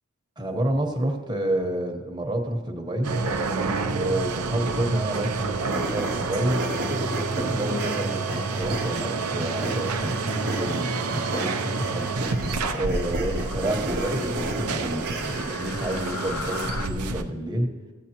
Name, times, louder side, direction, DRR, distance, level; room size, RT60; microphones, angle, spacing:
voice 1, 0.4-3.1 3.9-6.6 7.3-12.1 12.7-17.7, right 1 dB, 20° right, 2 dB, 1.0 m, -29 dB
sound 1, 3.0-17.2, right 3 dB, 80° right, 0.6 m, -29 dB
sound 2, 5.6-6.1 6.9-7.2 7.9-8.5 9.3-9.8 10.2-10.8 11.1-11.6 12.6-13.0 13.4-14.3 15.2-16.9, left 6 dB, 70° left, 0.6 m, -40 dB
sound 3, 5.6-15.7, right 1 dB, 45° right, 1.0 m, -33 dB
15.0 x 8.3 x 2.9 m, 1.3 s
head